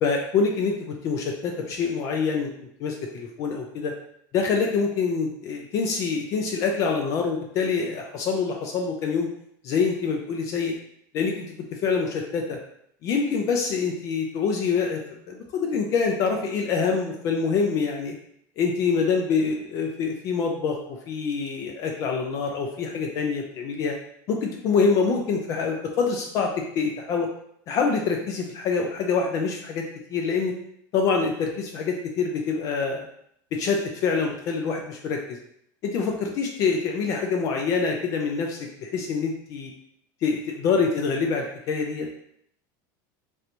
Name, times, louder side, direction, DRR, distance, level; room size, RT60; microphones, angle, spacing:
voice 1, 0.0-2.5 2.8-3.9 4.3-9.3 9.6-10.7 11.1-11.5 11.7-12.6 13.0-15.0 15.3-18.1 18.6-23.9 24.3-26.5 26.8-27.3 27.7-29.8 30.1-30.5 30.9-33.0 33.5-35.4 35.8-39.7 40.2-42.1, left 5 dB, 30° left, 2 dB, 0.3 m, -25 dB
3.3 x 2.6 x 2.8 m, 0.70 s
supercardioid pair, 175°, 11 cm